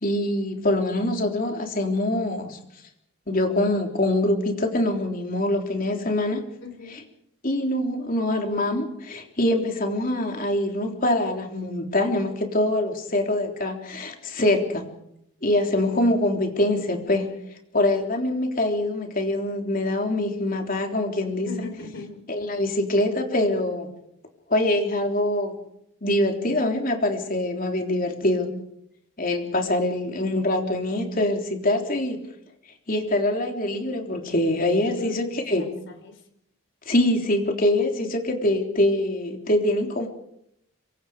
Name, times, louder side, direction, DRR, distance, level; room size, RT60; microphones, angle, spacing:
voice 1, 0.0-2.6 3.3-6.4 7.4-14.9 15.4-17.3 17.7-21.5 22.3-23.9 24.5-25.5 26.0-28.6 29.2-32.2 32.9-35.6 36.9-40.1, left 1 dB, 40° left, 3 dB, 3.6 m, -24 dB
voice 2, 6.6-7.1 21.4-22.3 34.8-36.2, left 4 dB, 55° left, 6 dB, 4.6 m, -40 dB
26.0 x 24.5 x 5.1 m, 0.76 s
head